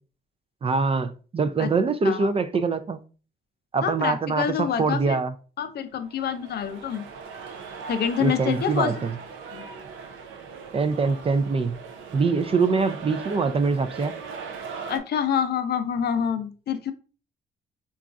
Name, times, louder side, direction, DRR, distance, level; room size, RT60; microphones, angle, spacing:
voice 1, 0.6-3.0 3.7-5.3 8.2-9.1 10.7-11.8 12.1-14.1, right 4 dB, 30° right, 0.3 m, -24 dB
voice 2, 3.8-5.2 5.6-7.0 7.9-8.9 9.5-9.7 14.9-16.9, left 8 dB, 55° left, 0.5 m, -27 dB
sound 1, 6.0-15.0, right 5 dB, 85° right, 0.5 m, -39 dB
3.9 x 2.3 x 2.3 m
cardioid pair, 90°, 20 cm